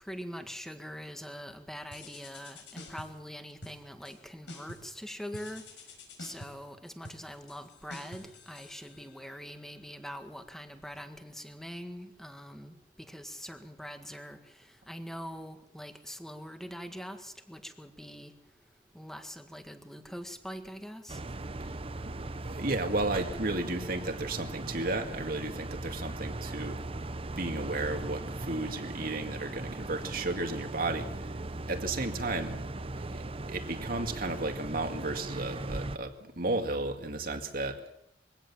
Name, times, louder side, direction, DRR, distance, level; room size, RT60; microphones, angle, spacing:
voice 1, 0.1-5.6 6.2-12.7 13.1-14.4 14.9-18.3 18.9-21.2, equal, ahead, 7 dB, 1.7 m, -43 dB
sound 1, 1.9-3.3 3.6-4.2 4.5-5.0 5.3-9.3, left 2 dB, 75° left, 5.4 m, -48 dB
sound 2, 21.1-36.0, right 2 dB, 30° right, 0.8 m, -39 dB
voice 2, 22.1-26.8 27.4-31.1 31.7-32.6 33.1-33.2 33.5-37.8, right 2 dB, 55° right, 5 dB, 2.2 m, -33 dB
22.5 x 17.0 x 7.3 m, 0.82 s
head